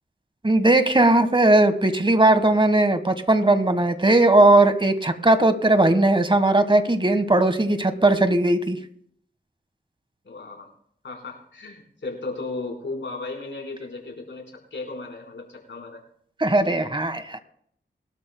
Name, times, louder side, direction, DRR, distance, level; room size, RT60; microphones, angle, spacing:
voice 1, 0.4-8.8 16.4-17.4, right 2 dB, 25° right, 10 dB, 1.4 m, -18 dB
voice 2, 10.2-10.7 11.0-14.4 14.7-16.0, left 3 dB, 75° left, -1 dB, 4.1 m, -35 dB
22.0 x 12.5 x 2.2 m, 0.66 s
cardioid pair, 45°, 19 cm